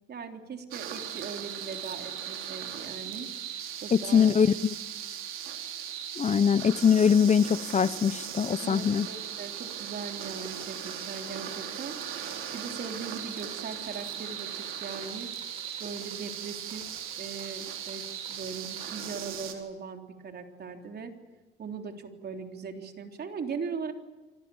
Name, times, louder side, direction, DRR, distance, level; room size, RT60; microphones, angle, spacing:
voice 1, 0.1-3.3 3.8-4.3 8.6-15.3 15.8-21.1 21.6-23.9, right 5 dB, 55° right, 4 dB, 3.6 m, -40 dB
sound 1, 0.7-19.5, right 9 dB, 90° right, 3.9 m, -38 dB
voice 2, 3.9-4.8 6.2-9.1, left 7 dB, 35° left, 17 dB, 0.8 m, -23 dB
sound 2, 9.6-19.2, right 2 dB, 30° right, 7.7 m, -52 dB
29.0 x 25.0 x 7.2 m, 1.2 s
cardioid pair, 90°, 20 cm